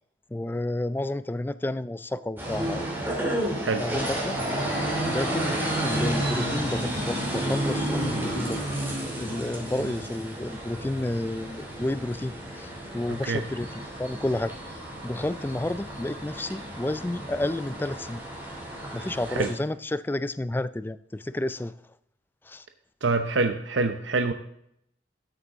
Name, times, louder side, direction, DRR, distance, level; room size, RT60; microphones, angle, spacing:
voice 1, 0.3-2.9 3.7-4.4 5.1-5.5 5.8-8.6 9.2-14.5 15.0-18.2 18.9-21.8 22.5-22.7, left 1 dB, 10° left, 15 dB, 0.3 m, -31 dB
sound 1, 2.4-19.5, right 1 dB, 10° right, 2.8 m, -31 dB
voice 2, 13.1-13.4 19.3-19.5 23.0-24.3, right 3 dB, 80° right, 7 dB, 0.8 m, -26 dB
13.5 x 8.3 x 3.6 m, 0.74 s
head